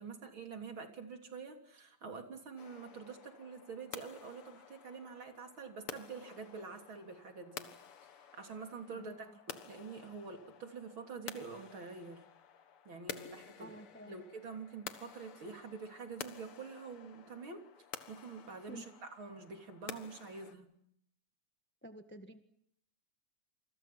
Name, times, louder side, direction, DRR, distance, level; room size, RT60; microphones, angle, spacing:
voice 1, 0.0-7.7 8.1-12.2 12.9-13.7 14.1-17.6 18.1-20.7, right 5 dB, 40° right, 5 dB, 3.8 m, -47 dB
sound 1, 2.6-20.5, left 8 dB, 50° left, 2.1 m, -51 dB
voice 2, 9.0-9.4 13.6-14.2 18.7-18.9 21.8-22.4, right 1 dB, 15° left, 8 dB, 0.3 m, -50 dB
28.0 x 28.0 x 6.0 m, 0.71 s
omnidirectional pair, 3.5 m